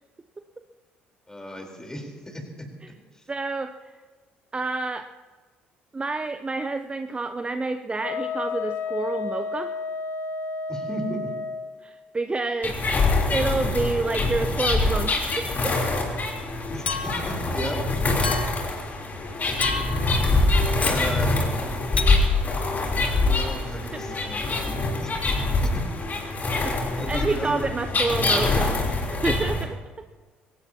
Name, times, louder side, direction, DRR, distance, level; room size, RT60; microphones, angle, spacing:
voice 1, 1.3-2.7 3.1-3.3 10.7-11.3 16.7-18.1 20.8-21.5 23.3-25.1 25.6-25.8 26.9-27.7, equal, 10° left, 2 dB, 4.0 m, -35 dB
voice 2, 3.3-3.7 4.5-5.0 5.9-9.7 11.8-12.8 13.3-16.0 21.4-21.5 23.9-24.1 26.9-29.8, right 3 dB, 20° right, 9 dB, 0.7 m, -28 dB
Wind instrument woodwind instrument, 8.0-11.7, left 4 dB, 50° left, 1.4 m, -31 dB
sound 1, 12.6-29.6, left 2 dB, 35° left, 3.6 m, -24 dB
Chink clink, 16.9-17.4 18.2-18.7 19.6-20.1 20.8-21.1 22.0-22.2, left 5 dB, 85° left, 0.5 m, -30 dB
22.5 x 17.5 x 2.9 m, 1.4 s
figure-of-eight pair, 55°, 5 cm